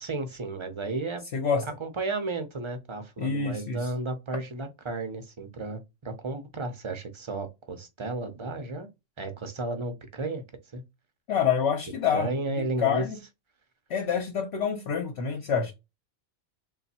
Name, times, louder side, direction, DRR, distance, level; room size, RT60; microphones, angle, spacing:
voice 1, 0.0-1.2 1.6-8.9 9.2-10.4 10.7-10.8 12.1-13.1, right 2 dB, 30° right, 0.7 m, -33 dB
voice 2, 1.3-1.7 3.2-3.9 11.3-13.2 13.9-15.7, left 7 dB, 65° left, 1.0 m, -27 dB
3.4 x 2.3 x 4.1 m
omnidirectional pair, 1.2 m